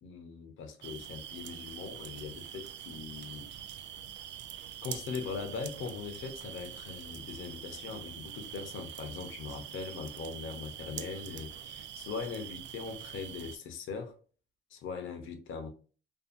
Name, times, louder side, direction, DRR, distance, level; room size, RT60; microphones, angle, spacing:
voice 1, 0.0-3.5 4.8-14.2 14.7-15.7, left 5 dB, 80° left, 0.7 m, -41 dB
sound 1, 0.8-13.6, right 10 dB, 65° right, 0.4 m, -45 dB
2.7 x 2.4 x 2.4 m
cardioid pair, 90°, 20 cm